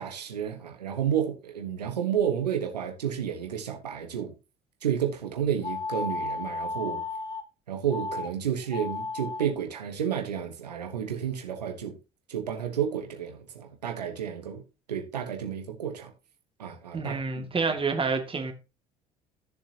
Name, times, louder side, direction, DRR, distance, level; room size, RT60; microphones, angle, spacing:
voice 1, 0.0-4.3 4.8-7.0 7.7-12.0 12.3-14.6 14.9-16.1 16.6-17.4, right 8 dB, 90° right, 1.3 m, -31 dB
sound 1, 5.6-7.4 7.9-8.3 8.6-9.5, left 3 dB, 20° left, 1.6 m, -33 dB
voice 2, 16.9-18.5, right 4 dB, 25° right, 2.2 m, -28 dB
14.5 x 7.1 x 2.9 m
hypercardioid pair, 60°, 20 cm